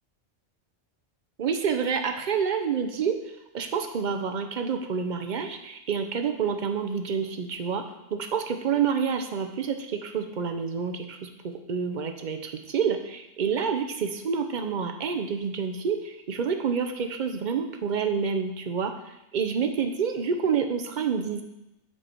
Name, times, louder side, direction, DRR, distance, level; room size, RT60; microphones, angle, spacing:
voice 1, 1.4-3.1 3.5-7.8 8.1-18.9 19.3-21.4, right 6 dB, 50° right, 6 dB, 0.6 m, -28 dB
7.8 x 4.8 x 4.4 m, 0.88 s
omnidirectional pair, 1.2 m